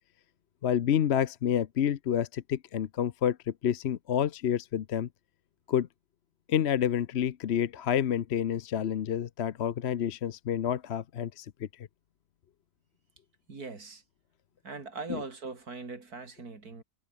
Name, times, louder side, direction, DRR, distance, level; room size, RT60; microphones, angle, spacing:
voice 1, 0.6-5.1 5.7-5.9 6.5-11.5 11.8-11.9 15.1-15.2, left 9 dB, 55° left, 0.9 m, -29 dB
voice 2, 13.5-14.0 14.6-16.8, right 4 dB, 75° right, 3.6 m, -40 dB
omnidirectional pair, 1.6 m